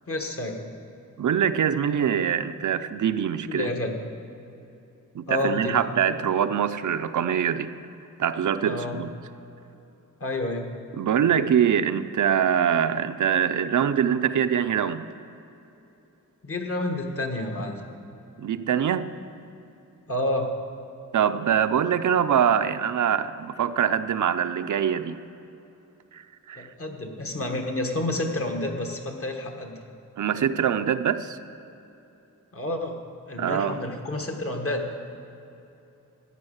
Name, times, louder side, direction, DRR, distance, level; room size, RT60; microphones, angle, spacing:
voice 1, 0.1-0.6 3.5-4.0 5.3-5.8 8.6-9.0 10.2-10.7 16.4-17.8 20.1-20.5 26.6-29.8 32.5-33.0 33.3-34.8, left 1 dB, 45° left, 3 dB, 1.4 m, -29 dB
voice 2, 1.2-3.7 5.1-7.7 8.2-9.1 11.0-15.1 18.4-19.1 21.1-25.2 26.1-26.2 26.5-26.7 30.2-31.4 33.4-33.8, right 8 dB, 65° right, 11 dB, 0.6 m, -24 dB
14.0 x 9.8 x 6.5 m, 3.0 s
wide cardioid pair, 165°, 32 cm